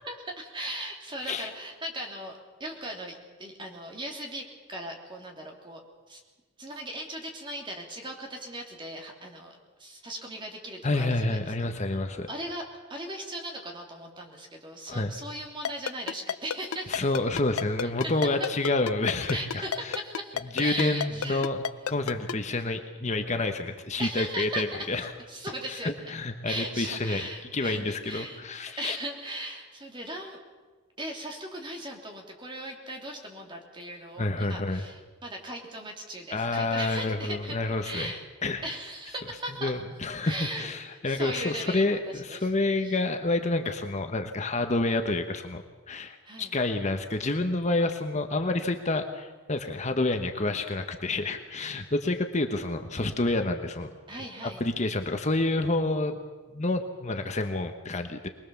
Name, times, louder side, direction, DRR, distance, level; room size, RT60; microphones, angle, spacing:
voice 1, 0.1-2.3 2.6-5.8 6.1-6.2 6.6-11.4 11.9-12.0 12.3-17.1 17.8-18.1 19.3-21.5 24.0-26.1 26.4-28.4 28.8-30.4 31.0-38.2 38.6-39.8 40.2-40.7 41.0-42.0 42.3-42.5 42.8-43.0 46.2-46.5 54.1-54.6, right 1 dB, 25° right, 1 dB, 3.2 m, -38 dB
voice 2, 10.8-12.3 14.9-15.1 16.9-20.0 20.5-21.6 21.9-25.1 25.7-29.0 34.2-34.9 36.3-38.1 38.4-38.6 39.6-53.9 54.6-56.2 56.5-58.3, left 2 dB, 35° left, 6 dB, 1.1 m, -28 dB
Ringtone, 15.6-22.3, left 7 dB, 85° left, 0.6 m, -29 dB
24.0 x 20.5 x 7.1 m, 1.3 s
head